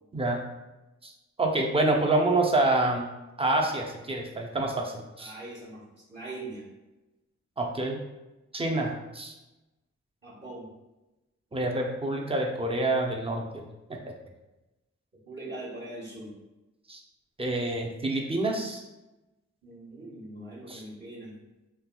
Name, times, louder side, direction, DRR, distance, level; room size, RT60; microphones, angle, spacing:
voice 1, 1.4-3.0 3.4-5.3 7.6-8.0 8.5-9.3 11.5-13.6 13.9-14.0 16.9-17.0 17.4-18.8 20.7-20.8, right 2 dB, 20° right, 1 dB, 0.6 m, -27 dB
voice 2, 5.2-5.8 6.1-6.6 10.2-10.7 15.3-16.3 19.6-21.3, right 2 dB, 35° right, -8 dB, 1.0 m, -41 dB
3.3 x 2.4 x 2.2 m, 1.0 s
cardioid pair, 45°, 30 cm